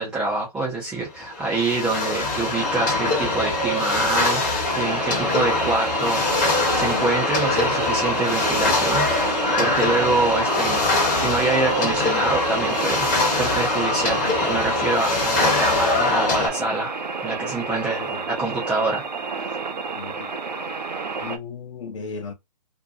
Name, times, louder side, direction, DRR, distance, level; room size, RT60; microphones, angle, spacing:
voice 1, 0.0-16.9 17.2-19.0 19.4-19.5, right 3 dB, 5° right, 0.4 m, -26 dB
sound 1, 1.3-16.5, left 3 dB, 25° left, 1.0 m, -23 dB
sound 2, 4.6-21.4, right 4 dB, 90° right, 0.6 m, -30 dB
voice 2, 17.7-18.3 20.0-20.3 21.2-22.3, left 4 dB, 50° left, 0.8 m, -36 dB
2.6 x 2.2 x 2.5 m
hypercardioid pair, 145°, 21 cm